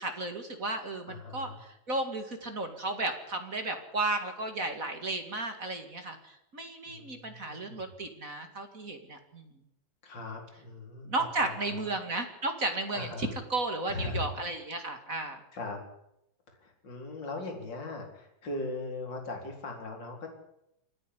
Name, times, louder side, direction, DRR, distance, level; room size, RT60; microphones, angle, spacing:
voice 1, 0.0-9.5 11.1-15.4, right 2 dB, 30° right, 6 dB, 2.0 m, -34 dB
voice 2, 1.1-1.6 6.9-7.8 10.0-11.9 12.9-13.3 13.9-14.3 15.5-15.8 16.5-20.3, left 2 dB, 30° left, 2 dB, 4.7 m, -39 dB
27.5 x 10.0 x 9.9 m, 0.81 s
omnidirectional pair, 4.0 m